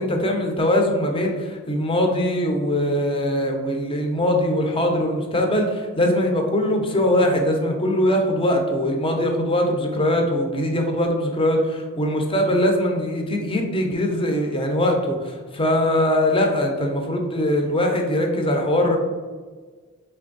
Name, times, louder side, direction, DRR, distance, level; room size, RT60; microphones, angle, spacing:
voice 1, 0.0-19.0, left 1 dB, 25° left, 2 dB, 0.6 m, -21 dB
3.9 x 3.4 x 3.9 m, 1.4 s
head